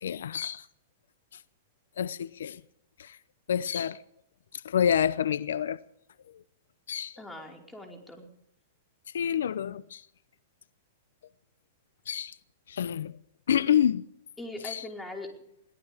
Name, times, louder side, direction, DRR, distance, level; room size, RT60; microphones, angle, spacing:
voice 1, 0.0-0.6 2.0-2.6 3.0-3.2 3.5-4.0 4.6-5.8 6.9-7.2 9.1-10.0 12.1-12.4 12.7-13.2 13.5-14.1 14.6-14.8, left 9 dB, 80° left, 0.7 m, -28 dB
voice 2, 7.2-8.3 14.4-15.3, left 2 dB, 5° left, 4.9 m, -41 dB
22.5 x 17.5 x 3.6 m
hypercardioid pair, 125°, 0 cm